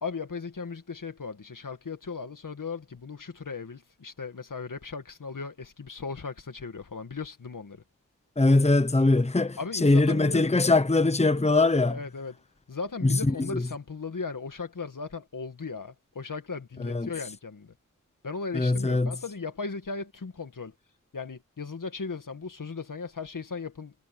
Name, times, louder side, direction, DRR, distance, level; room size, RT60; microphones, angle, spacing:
voice 1, 0.0-7.8 9.6-10.4 11.9-12.3 12.7-17.7 18.2-20.7 21.1-23.9, left 4 dB, 85° left, 2.0 m, -37 dB
voice 2, 8.4-12.0 13.0-13.6 16.8-17.1 18.5-19.1, left 2 dB, 20° left, 1.0 m, -22 dB
wide cardioid pair, 65°, 31 cm